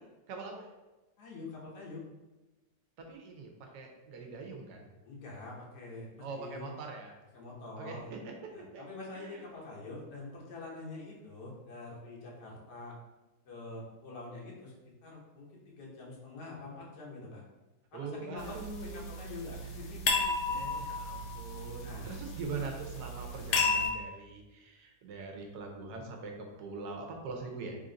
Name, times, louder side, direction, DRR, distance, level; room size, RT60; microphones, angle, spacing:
voice 1, 0.3-0.7 3.0-4.9 6.2-7.1 7.8-8.3 8.7-8.8 9.1-9.4 17.9-19.1 20.5-27.8, right 4 dB, 80° right, 2 dB, 1.2 m, -42 dB
voice 2, 1.2-2.0 5.0-6.7 7.3-8.1 8.5-13.0 13.4-14.7 15.0-17.4 17.9-18.5 18.8-20.7 21.8-22.2, left 3 dB, 90° left, -3 dB, 1.5 m, -45 dB
sound 1, 18.4-23.9, left 3 dB, 65° left, 0.7 m, -34 dB
3.5 x 2.5 x 3.8 m, 1.1 s
omnidirectional pair, 1.7 m